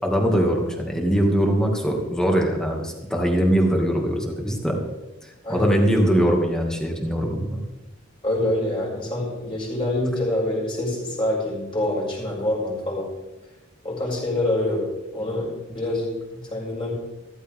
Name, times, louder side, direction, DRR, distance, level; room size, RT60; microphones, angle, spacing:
voice 1, 0.0-4.8 5.2-7.6, equal, 5° left, 0 dB, 2.3 m, -22 dB
voice 2, 5.4-5.8 8.2-13.1 13.8-14.9 15.1-16.9, left 1 dB, 25° left, -3 dB, 6.1 m, -26 dB
15.0 x 14.5 x 3.7 m, 1.1 s
head